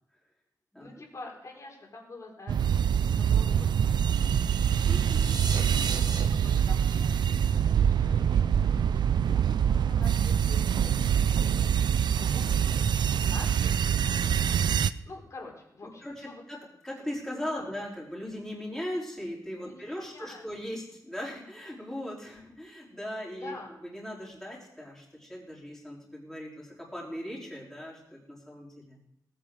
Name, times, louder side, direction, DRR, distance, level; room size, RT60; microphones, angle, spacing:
voice 1, 0.8-4.7 6.2-14.1 15.0-16.4 17.5-17.7 19.6-20.4 23.4-23.7, left 2 dB, 45° left, -1 dB, 3.9 m, -47 dB
sound 1, 2.5-14.9, right 8 dB, 85° right, 0.5 m, -25 dB
sound 2, 4.1-8.2, right 4 dB, 70° right, 1.4 m, -39 dB
voice 2, 4.9-6.0 16.0-29.0, equal, 5° left, -4 dB, 4.4 m, -39 dB
18.5 x 8.9 x 5.0 m, 0.79 s
wide cardioid pair, 140°, 7 cm